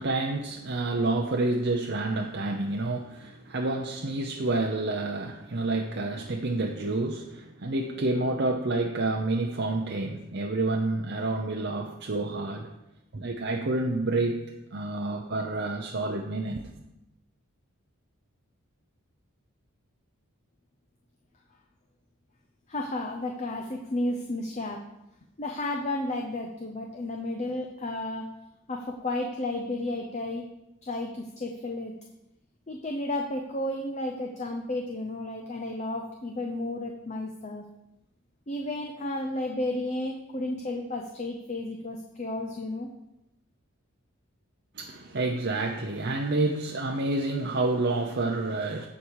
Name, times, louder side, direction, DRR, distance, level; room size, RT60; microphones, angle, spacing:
voice 1, 0.0-12.7 13.1-14.4 14.7-16.7 44.7-48.9, right 2 dB, 50° right, 1 dB, 0.7 m, -29 dB
voice 2, 22.7-24.8 25.4-28.3 28.7-30.5 30.8-31.9 32.7-37.6 38.5-42.9, left 1 dB, 30° left, 2 dB, 0.7 m, -32 dB
15.0 x 5.1 x 4.8 m, 0.91 s
head